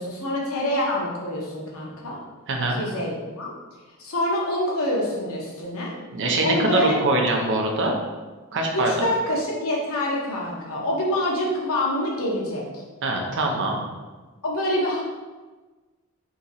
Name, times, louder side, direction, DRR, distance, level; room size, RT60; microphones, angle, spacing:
voice 1, 0.0-2.2 2.7-3.5 4.0-5.9 6.4-7.0 8.7-12.6 14.4-15.0, left 1 dB, 80° left, -3 dB, 0.9 m, -26 dB
voice 2, 2.5-2.8 6.1-7.9 8.5-8.9 13.0-13.8, right 2 dB, 60° right, 1 dB, 0.6 m, -23 dB
2.9 x 2.7 x 3.9 m, 1.3 s
head